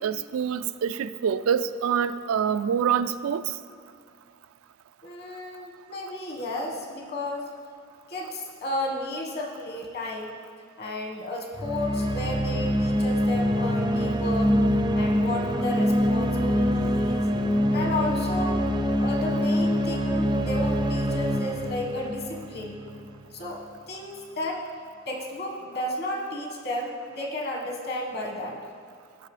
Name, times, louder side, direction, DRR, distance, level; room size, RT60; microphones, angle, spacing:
voice 1, 0.0-3.5, right 7 dB, 90° right, 12 dB, 0.3 m, -26 dB
voice 2, 5.0-7.5 8.1-10.4 10.8-14.6 14.9-17.3 17.7-18.6 19.0-22.8 23.3-24.6 25.1-28.6, left 1 dB, 50° left, 0 dB, 1.4 m, -33 dB
sound 1, 11.5-23.1, equal, 20° right, 0.4 m, -25 dB
15.5 x 5.9 x 3.2 m, 2.3 s
head